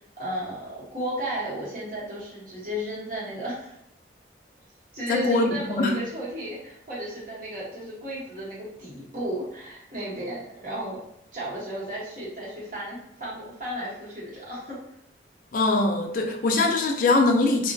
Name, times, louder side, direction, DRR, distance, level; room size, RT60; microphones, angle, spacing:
voice 1, 0.2-3.7 4.9-11.0 11.3-14.8, equal, 45° right, -8 dB, 0.9 m, -34 dB
voice 2, 5.1-5.9 15.5-17.7, left 2 dB, 45° left, 2 dB, 0.3 m, -22 dB
2.6 x 2.1 x 2.2 m, 0.76 s
head